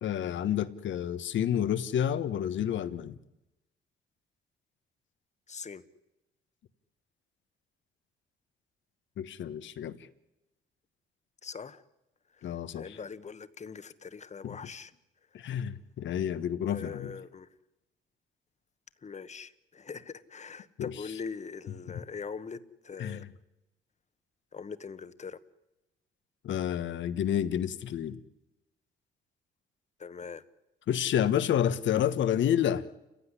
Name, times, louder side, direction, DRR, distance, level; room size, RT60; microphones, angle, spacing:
voice 1, 0.0-3.1 9.2-10.0 12.4-12.8 14.4-14.6 15.3-17.1 20.8-20.9 23.0-23.3 26.4-28.2 30.9-32.8, left 10 dB, 70° left, 14 dB, 1.3 m, -29 dB
voice 2, 5.5-5.8 11.4-11.8 12.3-14.9 16.7-17.5 19.0-23.3 24.5-25.4 30.0-30.4, left 5 dB, 35° left, 13 dB, 1.3 m, -42 dB
29.0 x 16.0 x 9.9 m, 0.97 s
cardioid pair, 90°, 20 cm